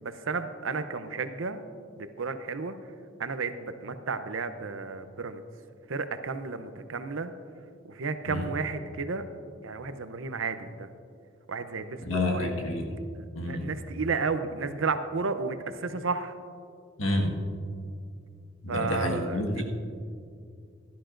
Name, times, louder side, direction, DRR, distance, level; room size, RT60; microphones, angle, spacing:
voice 1, 0.0-1.6 2.0-2.8 3.2-5.4 5.9-7.3 7.8-9.3 9.6-10.9 11.5-12.5 13.1-16.4 18.7-19.6, right 4 dB, 80° right, 10 dB, 0.7 m, -32 dB
voice 2, 12.0-12.9 13.3-13.7 17.0-17.4 18.6-19.6, left 1 dB, 80° left, 1 dB, 1.6 m, -29 dB
16.0 x 12.5 x 2.6 m, 2.3 s
head